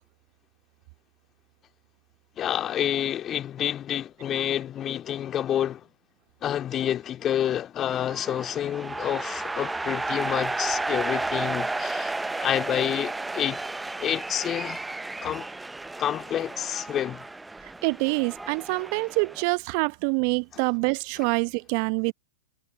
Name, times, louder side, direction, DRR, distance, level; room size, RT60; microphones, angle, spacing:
voice 1, 2.4-5.9 6.4-13.6 14.0-14.8 15.2-15.5 16.0-17.2 21.2-21.3, left 10 dB, 25° left, 2.3 m, -28 dB
Football-match Cheering Large-crowd Ambience .stereo, 7.9-19.4, right 2 dB, 5° right, 0.6 m, -33 dB
voice 2, 17.8-22.1, right 34 dB, 45° right, 1.1 m, -26 dB
figure-of-eight pair, 105°, 0 cm